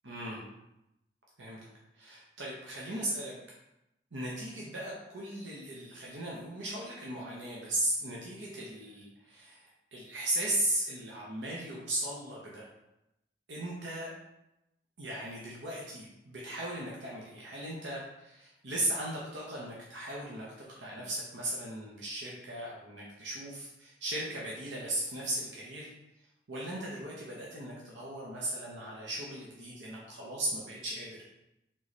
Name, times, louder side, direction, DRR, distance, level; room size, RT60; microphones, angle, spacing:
voice 1, 0.0-0.4 1.4-1.6 2.0-3.3 4.1-12.7 13.5-14.1 15.0-20.5 20.8-25.9 26.5-31.2, right 1 dB, 80° right, -4 dB, 0.9 m, -37 dB
3.7 x 3.1 x 4.1 m, 0.88 s
head